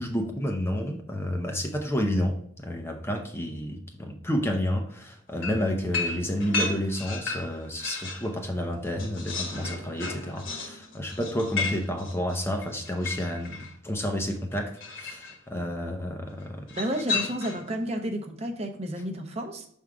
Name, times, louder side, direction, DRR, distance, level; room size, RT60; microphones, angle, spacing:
voice 1, 0.0-13.6 13.8-16.7, equal, 10° left, 3 dB, 0.6 m, -30 dB
sound 1, 5.4-8.3 8.7-13.7 14.8-15.4 16.7-17.7, left 4 dB, 60° left, 1.6 m, -34 dB
voice 2, 16.7-19.7, right 1 dB, 30° right, 4 dB, 0.8 m, -31 dB
6.4 x 3.6 x 4.7 m, 0.65 s
head